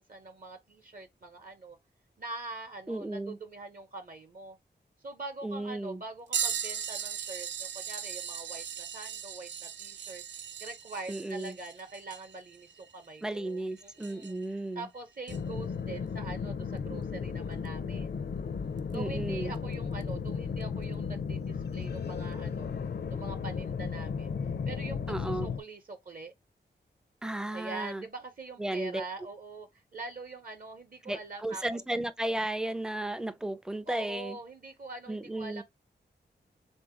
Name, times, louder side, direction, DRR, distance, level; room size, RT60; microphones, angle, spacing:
voice 1, 0.0-1.8 2.2-4.6 5.0-18.2 18.9-22.7 23.1-24.3 24.7-26.3 27.5-31.8 33.9-35.6, right 3 dB, 50° right, 0.8 m, -44 dB
voice 2, 2.9-3.4 5.4-6.0 11.1-11.6 13.2-14.9 18.9-19.5 25.1-25.5 27.2-28.0 28.6-29.0 31.0-34.4 35.1-35.6, right 1 dB, 5° right, 0.4 m, -34 dB
sound 1, 6.3-14.5 15.3-15.4 17.6-17.7 18.8-18.9 20.0-20.1, right 8 dB, 85° right, 0.4 m, -38 dB
sound 2, 15.3-25.6, left 6 dB, 60° left, 0.5 m, -35 dB
3.6 x 2.6 x 4.7 m
wide cardioid pair, 120°, 18 cm